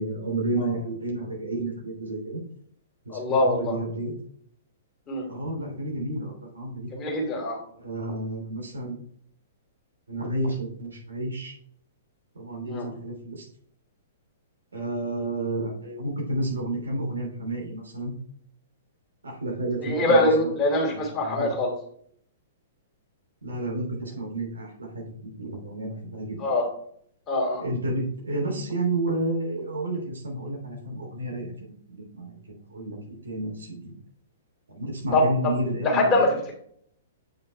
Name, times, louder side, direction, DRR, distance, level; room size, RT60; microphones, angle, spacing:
voice 1, 0.0-2.4 3.0-4.1 5.3-6.9 7.8-9.0 10.1-11.5 12.3-13.5 14.7-18.1 19.2-20.5 20.9-21.5 23.4-26.6 27.6-31.5 31.9-32.4 32.7-33.9 34.7-36.1, right 1 dB, 75° right, -1 dB, 3.0 m, -31 dB
voice 2, 3.1-3.7 5.1-5.3 6.9-7.6 12.7-12.9 19.8-21.7 26.4-26.7 27.3-27.6 35.1-35.2 35.8-36.5, left 2 dB, 20° left, -1 dB, 2.7 m, -23 dB
8.5 x 5.3 x 3.4 m, 0.64 s
figure-of-eight pair, 110°, 0 cm